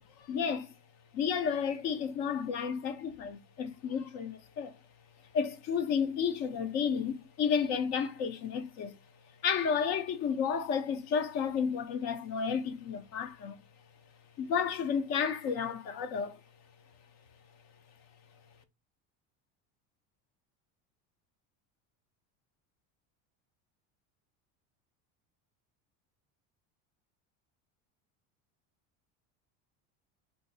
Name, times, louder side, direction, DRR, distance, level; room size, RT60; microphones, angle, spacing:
voice 1, 0.2-0.7 1.1-4.7 5.3-9.0 9.4-13.6 14.4-16.4, left 6 dB, 45° left, 0.6 m, -32 dB
2.5 x 2.4 x 3.9 m
cardioid pair, 160°, 37 cm